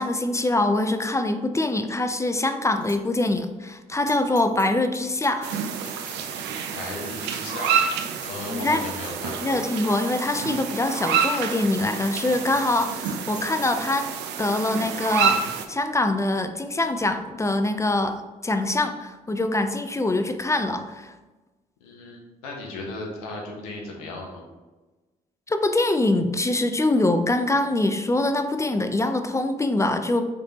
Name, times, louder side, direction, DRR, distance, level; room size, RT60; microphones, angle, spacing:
voice 1, 0.0-5.5 8.5-8.9 9.4-14.1 14.4-15.4 15.7-21.1 25.5-30.2, left 2 dB, 15° left, 7 dB, 0.4 m, -24 dB
Bicycle bell, 2.1-2.4 2.8-3.0 3.4-3.5 4.1-4.7 4.9-6.2 6.6-6.7 7.1-7.2 7.6-7.9 8.2-8.3 8.6-9.4 9.8-9.9 10.7-10.8 11.0-11.1 11.5-11.6 12.0-13.9, left 4 dB, 50° left, 1.0 m, -45 dB
sound 1, 5.4-15.7, right 7 dB, 65° right, 0.5 m, -28 dB
voice 2, 6.7-7.9 8.2-9.6 21.8-24.4, left 2 dB, 80° left, 0 dB, 0.9 m, -36 dB
5.0 x 3.3 x 2.9 m, 1.2 s
hypercardioid pair, 45°, 19 cm